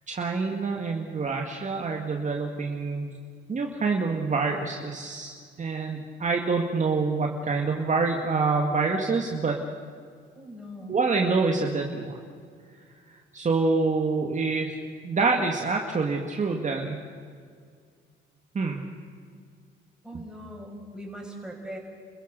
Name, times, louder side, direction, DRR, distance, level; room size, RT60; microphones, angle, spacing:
voice 1, 0.1-3.1 3.5-9.6 10.9-12.1 13.3-14.8 15.0-17.0 18.5-18.8, right 4 dB, 35° right, 1 dB, 2.1 m, -26 dB
voice 2, 10.3-11.0 20.0-21.8, equal, 5° right, -1 dB, 6.2 m, -40 dB
30.0 x 15.5 x 6.8 m, 2.1 s
cardioid pair, 90°, 20 cm